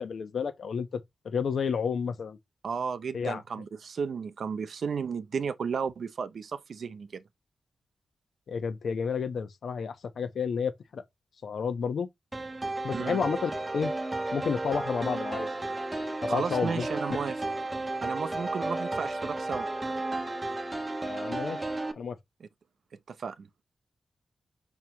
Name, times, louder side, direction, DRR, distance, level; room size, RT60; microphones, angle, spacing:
voice 1, 0.0-2.4 3.1-3.4 8.5-11.0 11.4-12.1 12.8-13.9 14.3-15.5 16.2-16.9 21.0-21.6 22.0-22.2, left 6 dB, 70° left, 1.0 m, -31 dB
voice 2, 2.6-7.2 12.9-13.2 16.3-17.3 18.0-19.7 23.1-23.5, right 6 dB, 60° right, 0.5 m, -33 dB
sound 1, 12.3-21.9, right 2 dB, 15° right, 0.8 m, -33 dB
6.2 x 5.4 x 3.0 m
wide cardioid pair, 175°, 0 cm